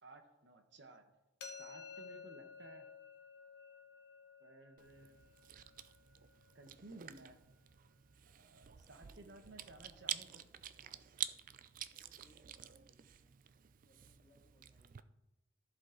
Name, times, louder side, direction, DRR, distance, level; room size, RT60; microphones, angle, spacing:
voice 1, 0.0-1.0 1.6-2.9 4.4-5.2 6.5-7.4 8.3-10.4 12.6-12.7, right 2 dB, 70° right, 6 dB, 1.0 m, -57 dB
sound 1, 1.4-7.2, left 5 dB, 65° left, 1.0 m, -54 dB
Chewing mastication, 4.8-15.0, right 11 dB, 45° right, 0.4 m, -49 dB
voice 2, 8.5-10.5 10.8-11.0 11.6-13.4 13.8-15.1, left 1 dB, 25° left, -2 dB, 2.2 m, -71 dB
14.0 x 5.2 x 3.8 m, 0.94 s
head